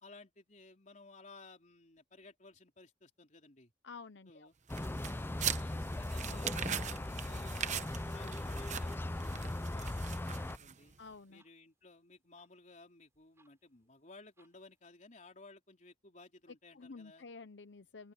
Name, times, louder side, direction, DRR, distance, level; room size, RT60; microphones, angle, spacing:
voice 1, 0.0-3.7 4.3-4.6 5.5-11.0 11.3-17.3, left 3 dB, 45° left, 3.8 m, -57 dB
voice 2, 3.8-4.5 11.0-11.4 16.5-18.1, left 4 dB, 80° left, 0.8 m, -51 dB
sound 1, 4.7-10.6, left 1 dB, 15° left, 0.4 m, -39 dB
sound 2, 4.7-10.9, right 9 dB, 40° right, 0.9 m, -41 dB
sound 3, 11.3-14.8, right 3 dB, 15° right, 7.5 m, -77 dB
open air
head